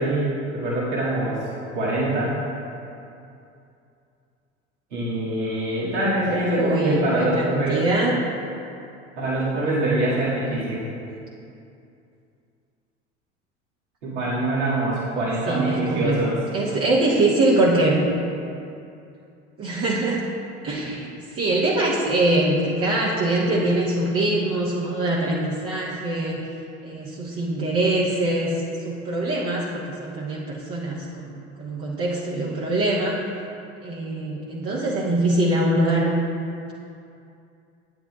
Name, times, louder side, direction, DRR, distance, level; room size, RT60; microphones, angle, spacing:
voice 1, 0.0-2.4 4.9-7.8 9.2-10.8 14.0-16.4, right 1 dB, 80° right, -8 dB, 2.2 m, -24 dB
voice 2, 6.3-8.2 15.5-18.0 19.6-20.2 20.6-26.5 26.8-28.6 28.8-33.2 33.8-36.2, right 2 dB, 40° right, -5 dB, 1.3 m, -23 dB
12.0 x 8.9 x 2.4 m, 2.6 s
hypercardioid pair, 70°, 35 cm